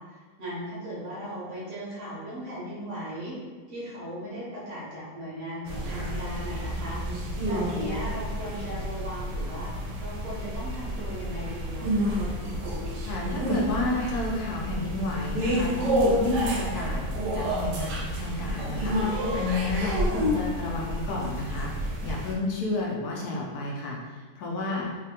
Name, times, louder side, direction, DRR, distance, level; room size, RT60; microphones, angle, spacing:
voice 1, 0.0-3.4 3.7-7.0 7.4-12.2, equal, 55° right, -8 dB, 1.1 m, -37 dB
sound 1, 5.7-22.3, equal, 90° right, 1.2 m, -29 dB
voice 2, 13.0-17.0 17.3-24.9, left 2 dB, 75° left, -2 dB, 1.0 m, -31 dB
3.1 x 2.1 x 2.8 m, 1.4 s
omnidirectional pair, 1.8 m